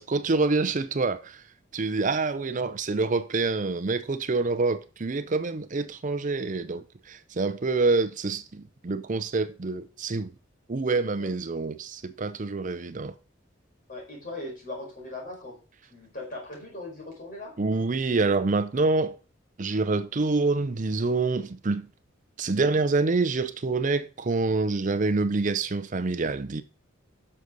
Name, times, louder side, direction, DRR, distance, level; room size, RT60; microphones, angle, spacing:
voice 1, 0.0-1.4 1.7-10.3 10.7-13.1 17.6-19.2 19.6-21.9 22.4-26.6, right 3 dB, 40° right, 0.6 m, -26 dB
voice 2, 13.9-15.6 15.9-17.6, left 2 dB, 40° left, 5.1 m, -39 dB
9.9 x 6.5 x 4.0 m
head